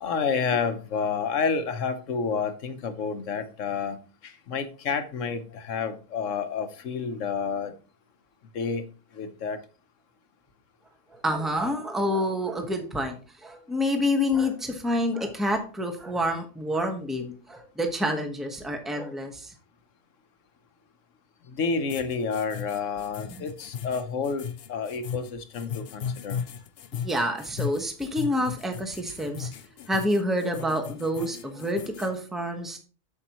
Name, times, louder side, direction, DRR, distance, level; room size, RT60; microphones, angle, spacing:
voice 1, 0.0-4.0 4.2-7.7 8.5-8.8 9.2-9.6 21.5-26.4, left 5 dB, 80° left, 1.3 m, -29 dB
voice 2, 11.1-19.5 27.0-29.5 29.9-32.8, left 1 dB, ahead, 1.1 m, -28 dB
sound 1, 21.9-32.1, left 7 dB, 60° left, 0.7 m, -37 dB
8.3 x 7.0 x 3.0 m
omnidirectional pair, 1.3 m